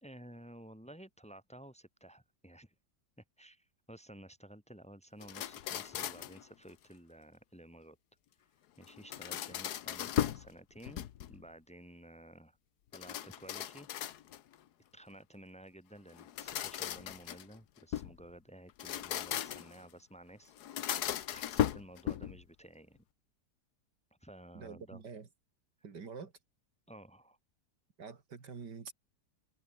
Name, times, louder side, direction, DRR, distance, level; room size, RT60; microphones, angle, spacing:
voice 1, 0.0-2.7 3.2-8.0 8.8-11.0 11.3-12.6 12.9-13.9 14.9-23.0 24.2-25.0 26.9-27.4, right 1 dB, 5° left, 2.5 m, -53 dB
sound 1, 5.2-6.4 8.8-10.5 10.8-11.5 12.9-14.5 16.1-18.2 18.7-19.8 20.6-22.4, left 11 dB, 70° left, 1.4 m, -37 dB
voice 2, 24.5-25.3 25.8-26.3 28.0-28.9, right 5 dB, 75° right, 2.9 m, -46 dB
omnidirectional pair, 1.9 m